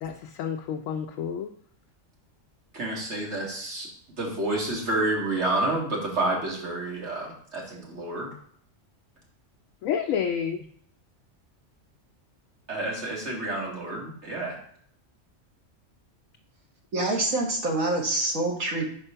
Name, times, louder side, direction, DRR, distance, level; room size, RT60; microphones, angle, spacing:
voice 1, 0.0-1.5 9.8-10.7, left 8 dB, 90° left, 4 dB, 1.0 m, -29 dB
voice 2, 2.7-3.9 4.2-8.3 12.7-14.6, right 2 dB, 60° right, -3 dB, 2.2 m, -29 dB
voice 3, 16.9-18.9, right 2 dB, 90° right, 0 dB, 2.0 m, -26 dB
5.2 x 4.3 x 5.5 m, 0.62 s
omnidirectional pair, 1.3 m